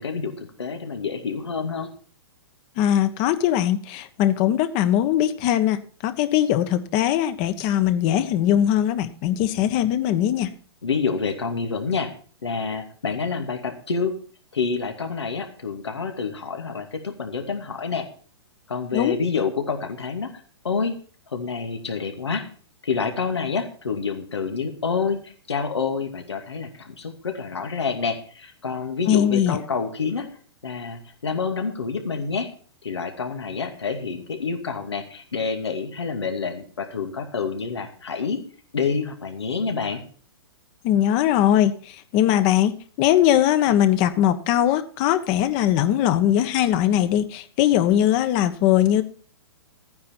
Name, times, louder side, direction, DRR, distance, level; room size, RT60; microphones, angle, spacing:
voice 1, 0.0-1.9 10.8-12.1 12.4-14.1 14.5-18.1 18.7-20.3 20.6-21.0 21.3-22.5 22.8-30.3 30.6-32.5 32.8-38.4 38.7-40.0, left 5 dB, 90° left, 5 dB, 2.4 m, -28 dB
voice 2, 2.8-10.5 18.9-19.2 29.1-29.6 40.8-41.7 42.1-49.0, left 11 dB, 40° left, 11 dB, 1.3 m, -20 dB
14.0 x 9.5 x 4.5 m, 0.43 s
hypercardioid pair, 130°, 14 cm